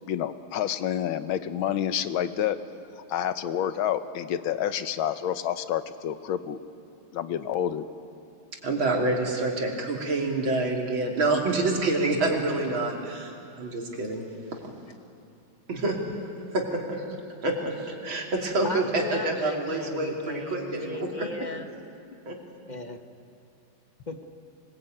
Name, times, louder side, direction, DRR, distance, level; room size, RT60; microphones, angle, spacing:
voice 1, 0.0-2.6 3.1-6.6 7.1-7.8, left 10 dB, 85° left, 11 dB, 1.7 m, -28 dB
voice 2, 8.6-14.3 15.7-16.0 16.5-17.0 17.4-21.3 22.3-22.4, right 2 dB, 80° right, 0 dB, 3.7 m, -27 dB
voice 3, 18.6-21.7 22.7-23.0 24.1-24.2, left 2 dB, 30° left, 6 dB, 1.0 m, -36 dB
24.0 x 21.0 x 9.1 m, 2.6 s
omnidirectional pair, 2.2 m